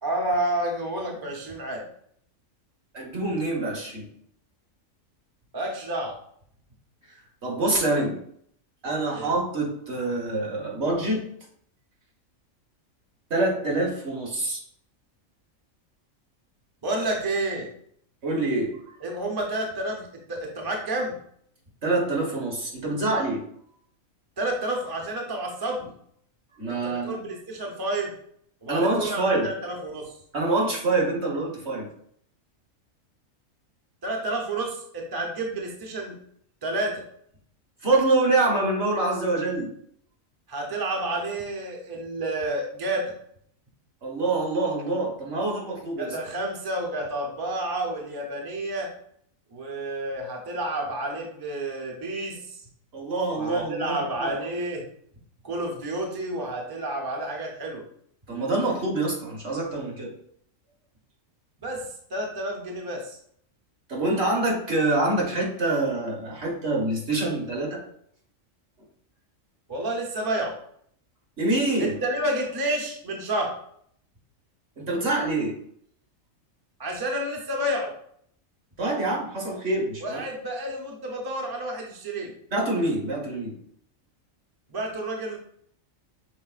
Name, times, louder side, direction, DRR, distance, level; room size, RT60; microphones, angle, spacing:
voice 1, 0.0-1.8 5.5-6.2 9.1-9.3 16.8-17.7 19.0-21.2 24.4-25.9 26.8-28.1 28.6-30.2 34.0-36.2 36.6-37.0 40.5-43.1 46.0-48.9 49.5-52.6 53.4-54.9 55.4-57.9 61.6-63.2 69.7-70.6 71.8-73.5 76.8-77.9 80.0-82.3 84.7-85.4, right 1 dB, 25° right, 0 dB, 0.5 m, -30 dB
voice 2, 2.9-4.1 7.4-8.2 8.8-11.3 13.3-14.6 18.2-18.8 21.8-23.4 26.6-27.2 28.7-29.5 30.3-31.9 37.8-39.7 44.0-46.1 52.9-54.3 58.3-60.1 63.9-67.8 71.4-72.0 74.8-75.6 78.8-80.2 82.5-83.6, right 2 dB, 55° right, -1 dB, 1.4 m, -26 dB
5.8 x 3.6 x 2.4 m, 0.66 s
omnidirectional pair, 1.4 m